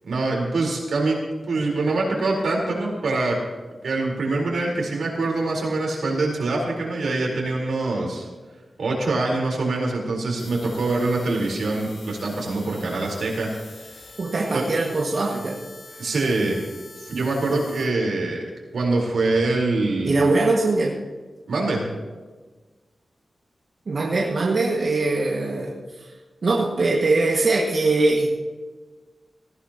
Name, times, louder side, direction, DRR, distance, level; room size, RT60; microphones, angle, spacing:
voice 1, 0.0-1.2 1.5-3.4 3.8-8.3 8.8-13.5 14.5-14.6 16.0-16.6 17.0-18.4 18.7-20.2 21.5-21.9, right 2 dB, 90° right, -1 dB, 4.1 m, -24 dB
sound 1, 10.4-17.9, left 2 dB, 65° left, 4.3 m, -45 dB
voice 2, 14.2-15.6 16.0-16.1 20.0-20.9 23.9-25.7 26.4-28.3, right 3 dB, 55° right, -3 dB, 1.8 m, -21 dB
18.5 x 15.5 x 3.0 m, 1.3 s
wide cardioid pair, 170°, 0 cm